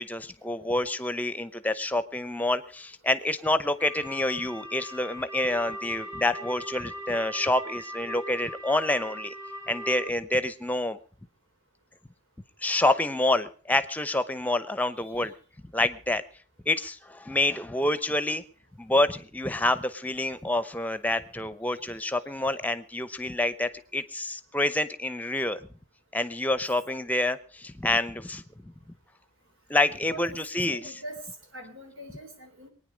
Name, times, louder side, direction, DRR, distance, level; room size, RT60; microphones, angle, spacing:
voice 1, 0.0-9.3 9.7-11.0 12.6-15.3 15.7-16.2 16.7-18.4 18.8-25.7 26.1-28.7 29.7-30.9, left 2 dB, 10° left, 12 dB, 0.7 m, -27 dB
sound 1, 3.8-10.1, equal, 15° right, 1.1 m, -40 dB
voice 2, 30.1-31.3 31.5-32.7, right 1 dB, 85° right, 5 dB, 4.0 m, -43 dB
23.0 x 9.7 x 5.1 m, 0.40 s
head